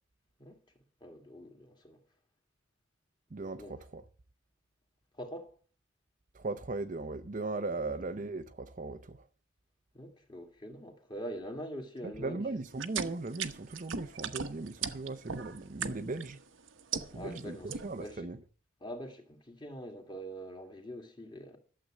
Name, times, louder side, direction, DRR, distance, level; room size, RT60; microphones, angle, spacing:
voice 1, 1.0-2.0 3.6-3.7 5.1-5.5 9.9-12.4 17.1-18.3 18.8-21.6, equal, 20° left, 2.2 m, -44 dB
voice 2, 3.3-4.0 6.3-9.3 12.0-16.4 17.1-18.4, right 3 dB, 40° right, 0.6 m, -38 dB
sound 1, 12.7-16.3 16.7-17.4 17.7-18.1, right 7 dB, 75° right, 1.0 m, -37 dB
12.5 x 7.6 x 7.4 m
head